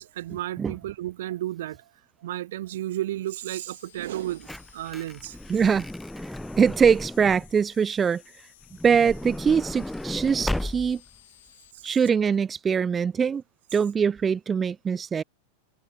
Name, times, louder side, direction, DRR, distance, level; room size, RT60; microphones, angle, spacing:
voice 1, 0.0-1.8 2.2-5.4, right 14 dB, 55° right, 0.8 m, -33 dB
sound 1, 3.3-11.7, left 15 dB, 55° left, 4.5 m, -56 dB
Truck / Door, 4.1-7.6 8.6-11.2 11.9-12.0 12.1-12.3, left 1 dB, 5° left, 1.6 m, -35 dB
voice 2, 5.5-5.9 6.6-8.2 8.8-11.0 11.8-13.4 13.7-15.2, right 6 dB, 20° right, 0.6 m, -22 dB
figure-of-eight pair, 90°, 0 cm